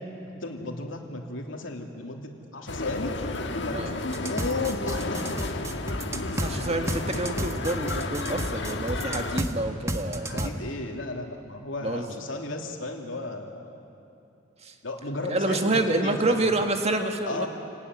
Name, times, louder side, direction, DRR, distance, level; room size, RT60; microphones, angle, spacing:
voice 1, 0.3-3.2 3.5-5.4 10.2-13.8 14.8-16.2 17.3-17.5, left 2 dB, 85° left, 2 dB, 2.9 m, -34 dB
sound 1, 2.7-9.4, left 2 dB, 65° left, 1.5 m, -32 dB
voice 2, 3.6-4.0 6.3-10.6 11.8-12.1 14.6-14.7 15.3-17.5, right 2 dB, 35° right, 5 dB, 1.8 m, -28 dB
sound 2, 4.1-6.5 6.9-9.5 9.9-10.5, right 1 dB, 15° right, 1.4 m, -31 dB
28.5 x 18.5 x 9.8 m, 2.8 s
head